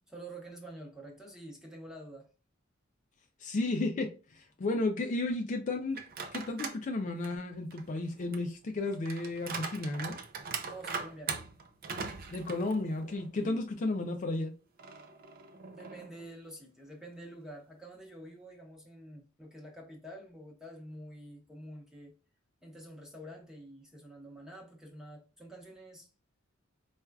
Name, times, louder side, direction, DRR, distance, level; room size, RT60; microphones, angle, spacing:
voice 1, 0.1-2.3 10.6-11.4 13.4-13.6 15.7-22.1 22.6-26.1, right 1 dB, 5° right, 0.9 m, -48 dB
voice 2, 3.4-6.0 6.3-10.2 12.3-14.5, left 2 dB, 40° left, 0.4 m, -33 dB
sound 1, 5.9-6.8 7.2-13.3 13.7-13.8 14.8-16.3, right 5 dB, 45° right, 0.5 m, -41 dB
4.3 x 2.3 x 2.2 m
head